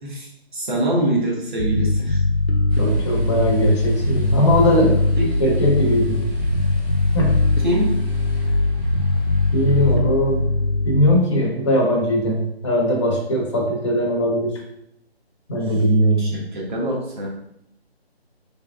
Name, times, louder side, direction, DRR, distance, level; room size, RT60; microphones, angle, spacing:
voice 1, 0.0-2.2 5.2-5.5 7.6-7.9 16.2-17.3, right 1 dB, 50° right, -3 dB, 1.1 m, -24 dB
Bass guitar, 1.6-11.2, left 2 dB, 70° left, 0.7 m, -21 dB
sound 1, 2.7-9.9, left 3 dB, 10° right, 0.6 m, -28 dB
voice 2, 2.8-5.0 5.4-6.2 7.1-7.3 9.5-10.4 10.8-14.6 15.5-16.4, equal, 30° left, -2 dB, 0.7 m, -19 dB
3.4 x 3.0 x 2.4 m, 0.79 s
figure-of-eight pair, 150°, 32 cm